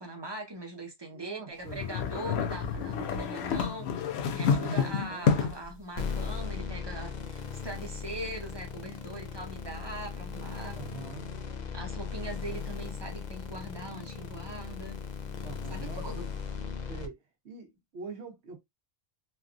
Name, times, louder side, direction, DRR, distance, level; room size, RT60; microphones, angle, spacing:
voice 1, 0.0-3.9 4.3-10.8 11.7-15.1 15.7-16.3, right 2 dB, 30° right, 0.7 m, -41 dB
voice 2, 1.1-1.8 4.5-5.5 10.7-11.3 15.4-16.3 16.9-17.2 17.4-18.6, right 5 dB, 85° right, 1.0 m, -44 dB
sound 1, 1.7-5.7, left 6 dB, 80° left, 0.9 m, -29 dB
sound 2, 6.0-17.1, left 6 dB, 50° left, 0.6 m, -38 dB
3.2 x 2.3 x 2.4 m
omnidirectional pair, 1.1 m